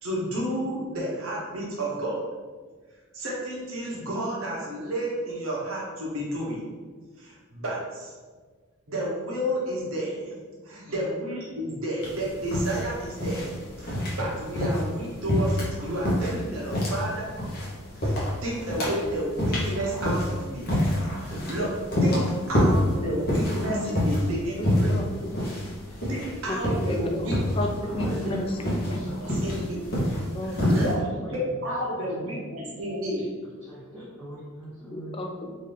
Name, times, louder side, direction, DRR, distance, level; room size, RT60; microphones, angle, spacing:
voice 1, 0.0-2.2 3.1-6.7 7.2-8.1 8.9-10.3 10.6-17.3 17.9-20.7 21.2-22.2 22.5-25.0 26.1-27.3 28.2-28.4 29.2-29.8 30.5-31.0 31.3-33.3, right 1 dB, 75° right, -4 dB, 1.0 m, -31 dB
sound 1, 12.0-30.9, left 1 dB, 50° left, 1.0 m, -27 dB
voice 2, 22.1-23.9 24.5-25.6 26.5-27.3 27.6-29.0 30.3-30.6 34.9-35.5, left 1 dB, 25° left, 3 dB, 0.3 m, -34 dB
voice 3, 28.0-29.6 31.2-31.6 32.1-32.4 33.6-35.1, equal, 5° right, -13 dB, 1.0 m, -41 dB
3.8 x 2.6 x 3.3 m, 1.4 s
head